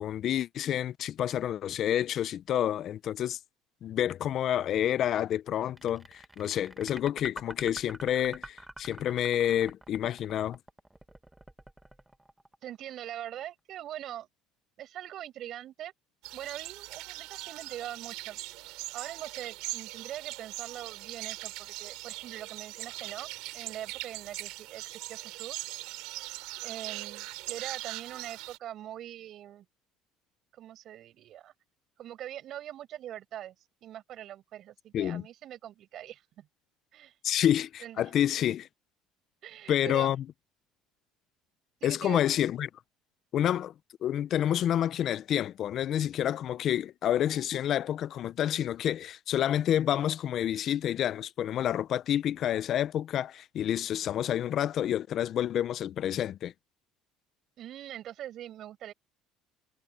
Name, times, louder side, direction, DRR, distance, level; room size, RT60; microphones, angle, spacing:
voice 1, 0.0-3.4 3.8-10.6 34.9-35.2 37.2-38.7 39.7-40.2 41.8-42.7 43.3-43.7 44.0-56.5, left 11 dB, 55° left, 0.7 m, -29 dB
sound 1, 5.8-12.9, right 1 dB, 10° right, 1.6 m, -47 dB
voice 2, 12.6-14.3 14.8-15.9 16.3-18.4 18.9-25.7 26.6-29.7 30.5-31.5 32.0-33.5 33.8-36.5 36.9-37.1 37.8-38.1 39.4-40.1 41.8-42.2 57.6-58.9, right 12 dB, 55° right, 7.7 m, -42 dB
sound 2, 16.2-28.6, right 21 dB, 80° right, 3.0 m, -41 dB
supercardioid pair, 95°, 0 cm